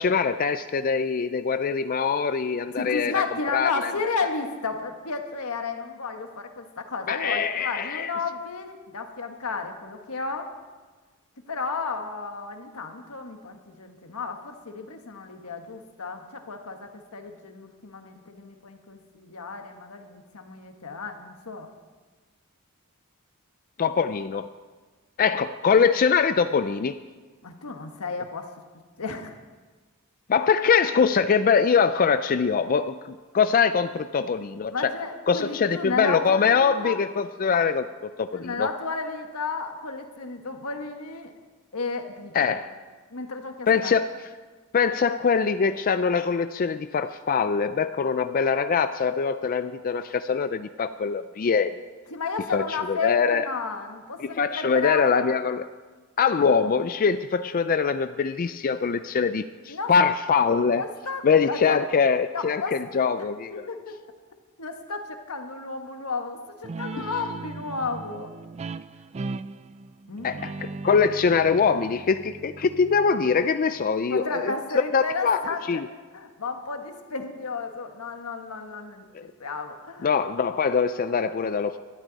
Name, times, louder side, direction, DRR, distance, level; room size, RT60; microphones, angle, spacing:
voice 1, 0.0-3.2 3.5-3.9 7.1-8.1 23.8-24.5 25.2-27.0 30.3-34.9 35.3-38.7 42.3-42.7 43.7-44.3 44.7-51.8 52.5-53.5 54.2-55.7 56.2-60.9 61.2-63.7 70.2-74.5 74.9-75.9 80.0-81.8, left 6 dB, 40° left, 11 dB, 0.4 m, -23 dB
voice 2, 2.8-10.5 11.5-21.7 27.4-28.5 29.0-29.3 34.7-37.0 38.3-41.3 41.7-42.6 43.1-43.9 52.1-55.3 59.7-59.9 60.7-61.8 62.3-62.8 63.2-64.0 64.6-68.3 70.1-70.4 74.1-75.8 76.1-80.1, left 4 dB, 85° left, 5 dB, 1.5 m, -33 dB
Guitar, 66.6-73.8, right 3 dB, 30° right, 0.3 m, -38 dB
19.0 x 12.5 x 4.1 m, 1.4 s
head